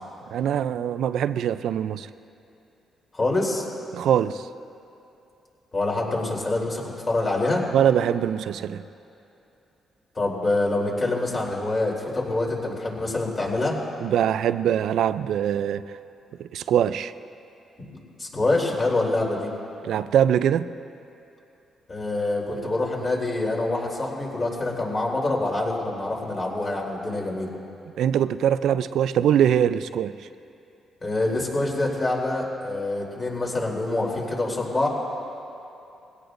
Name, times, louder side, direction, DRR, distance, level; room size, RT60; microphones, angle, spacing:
voice 1, 0.3-2.1 3.9-4.5 7.7-8.8 14.0-15.9 16.4-17.1 19.8-20.7 28.0-30.2, right 9 dB, 80° right, 13 dB, 0.4 m, -22 dB
voice 2, 3.1-3.6 5.7-7.6 10.1-13.7 17.8-17.9 18.2-19.5 21.9-27.5 31.0-34.9, left 2 dB, 35° left, -2 dB, 3.3 m, -26 dB
22.0 x 17.0 x 2.6 m, 2.7 s
cardioid pair, 90°, 0 cm